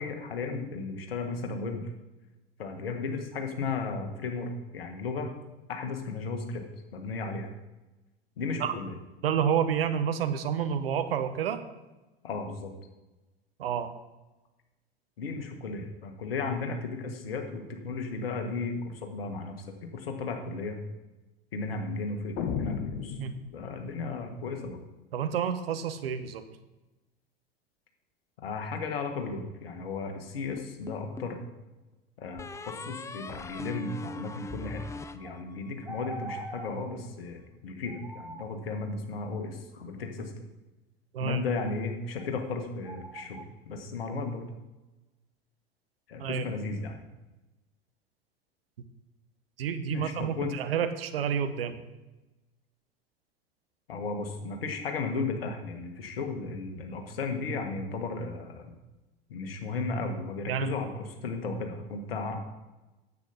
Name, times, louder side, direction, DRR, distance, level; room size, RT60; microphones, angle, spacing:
voice 1, 0.0-1.8 2.6-5.3 5.7-6.6 6.9-7.5 8.4-8.9 12.2-12.7 15.2-19.6 19.9-20.8 21.5-23.2 23.5-24.8 28.4-31.4 32.2-34.8 35.1-40.3 41.2-44.4 46.1-47.0 49.9-50.6 53.9-58.7 59.3-62.4, left 4 dB, 70° left, 4 dB, 1.7 m, -35 dB
voice 2, 9.2-11.6 13.6-13.9 23.2-23.3 25.1-26.4 41.1-41.4 46.2-46.4 49.6-51.8 60.5-60.7, right 8 dB, 70° right, 10 dB, 1.0 m, -29 dB
sound 1, 22.4-24.0, left 8 dB, 50° left, 1.2 m, -34 dB
sound 2, 30.6-31.4 32.4-35.9, left 2 dB, 10° left, 0.4 m, -41 dB
sound 3, 35.2-35.4 35.8-36.8 37.9-38.5 42.2-42.3 42.8-43.4, right 2 dB, 10° right, 1.0 m, -42 dB
9.5 x 8.2 x 5.4 m, 1.1 s
figure-of-eight pair, 80°, 30 cm